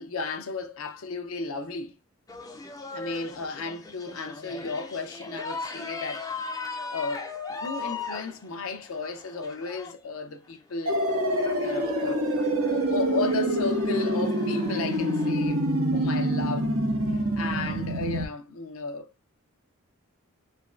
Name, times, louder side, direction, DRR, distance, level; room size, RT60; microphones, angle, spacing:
voice 1, 0.0-2.0 2.9-6.3 6.9-11.1 11.6-16.7 17.1-19.1, left 4 dB, 70° left, 0.6 m, -34 dB
sound 1, 2.3-9.9 10.7-15.3, left 4 dB, 15° left, 0.3 m, -39 dB
sound 2, 10.9-18.3, right 1 dB, 85° right, 1.2 m, -26 dB
3.3 x 3.1 x 2.4 m
head